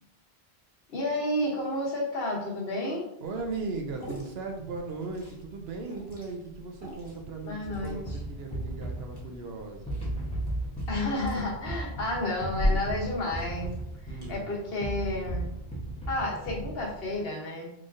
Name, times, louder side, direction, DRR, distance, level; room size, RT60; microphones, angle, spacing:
voice 1, 0.9-3.0 7.5-8.2 10.9-13.8 14.0-15.5 16.1-17.7, left 1 dB, 65° left, -1 dB, 1.1 m, -31 dB
Liquid, 3.2-14.3, left 1 dB, 25° left, 1.2 m, -38 dB
voice 2, 3.2-10.1 14.1-14.6, right 3 dB, 70° right, 3 dB, 0.9 m, -37 dB
sound 1, 7.6-17.2, right 1 dB, 5° left, 0.9 m, -36 dB
3.9 x 3.2 x 2.5 m, 0.77 s
omnidirectional pair, 1.1 m